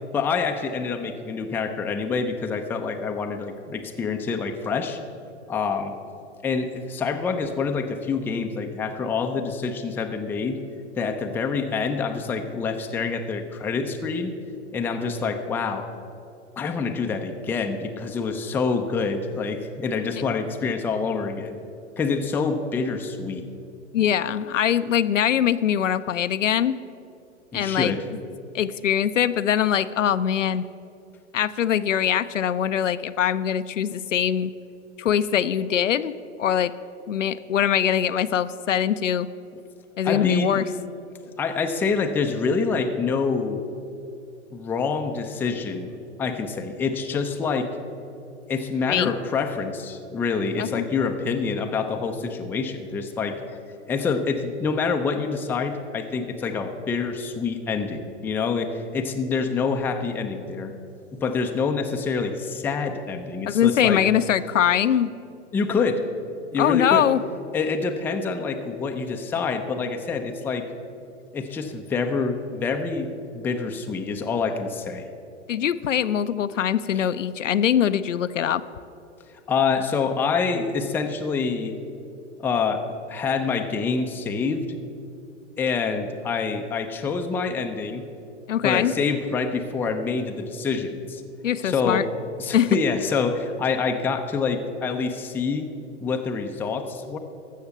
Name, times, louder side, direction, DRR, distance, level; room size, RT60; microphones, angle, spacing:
voice 1, 0.1-5.0 5.5-5.9 6.4-10.6 11.0-14.4 14.7-15.9 16.6-21.6 22.0-23.4 27.5-28.1 39.5-39.6 40.0-40.6 41.4-43.6 44.5-47.8 48.5-53.6 53.9-60.7 61.1-64.0 65.5-66.0 66.5-67.1 67.5-70.7 71.3-75.1 76.9-77.0 79.5-81.7 82.4-84.7 85.6-88.1 88.6-91.2 91.6-92.1 92.4-95.7 96.0-97.2, left 5 dB, 5° left, 5 dB, 0.4 m, -26 dB
voice 2, 23.9-26.8 27.5-27.9 28.5-30.6 31.3-34.5 35.0-36.1 36.4-36.7 37.1-39.3 40.0-40.6 48.9-49.1 50.6-50.9 63.5-65.1 66.6-67.2 75.5-78.6 88.5-88.9 91.4-92.1 92.5-92.8, left 9 dB, 80° left, 13 dB, 0.6 m, -22 dB
14.0 x 6.4 x 6.9 m, 2.6 s
hypercardioid pair, 110°, 37 cm